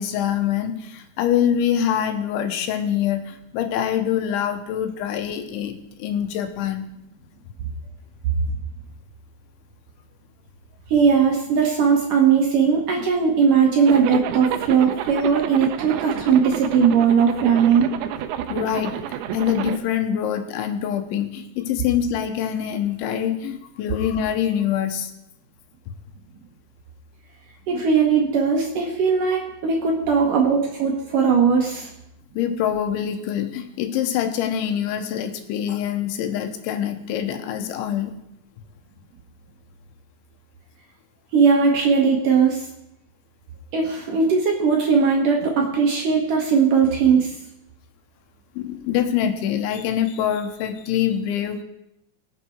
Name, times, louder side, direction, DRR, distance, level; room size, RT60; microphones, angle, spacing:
voice 1, 0.0-6.9 18.5-25.1 32.4-38.1 48.6-51.6, left 9 dB, 80° left, 7 dB, 3.4 m, -25 dB
voice 2, 10.9-17.9 27.7-31.9 41.3-42.7 43.7-47.4, right 6 dB, 65° right, 1 dB, 2.3 m, -19 dB
Zipper (clothing), 13.8-19.8, right 10 dB, 85° right, 2.2 m, -30 dB
22.5 x 7.6 x 4.6 m, 0.84 s
omnidirectional pair, 5.3 m